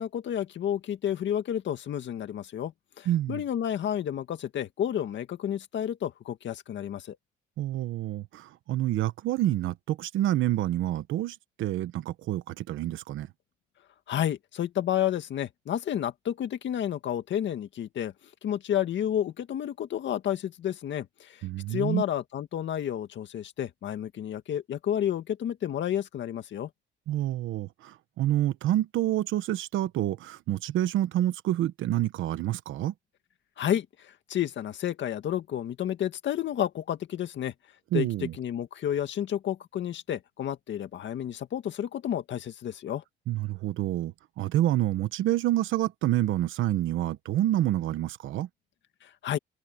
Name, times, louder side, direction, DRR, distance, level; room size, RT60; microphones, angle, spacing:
voice 1, 0.0-7.2 14.1-18.1 18.4-26.7 33.6-37.5 37.9-43.0 49.0-49.4, left 10 dB, 70° left, 2.0 m, -31 dB
voice 2, 3.0-3.4 7.6-13.3 21.4-22.0 27.1-32.9 37.9-38.3 43.3-48.5, right 13 dB, 85° right, 1.3 m, -28 dB
cardioid pair, 90°, 20 cm